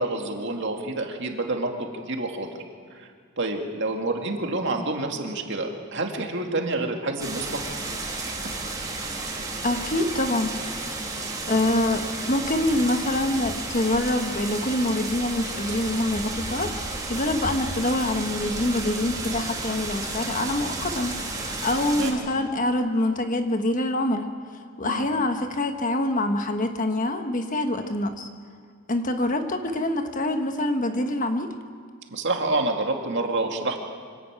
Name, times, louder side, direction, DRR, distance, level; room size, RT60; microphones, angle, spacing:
voice 1, 0.0-2.6 2.9-3.1 3.4-7.6 17.7-17.8 22.0-22.1 24.8-25.1 32.1-33.8, right 2 dB, 55° right, 2 dB, 2.3 m, -28 dB
sound 1, 7.2-22.1, right 2 dB, 15° right, 2.8 m, -32 dB
voice 2, 9.6-10.5 11.5-28.3 28.9-31.5, left 1 dB, 35° left, 6 dB, 1.3 m, -25 dB
25.5 x 11.5 x 8.9 m, 2.1 s
head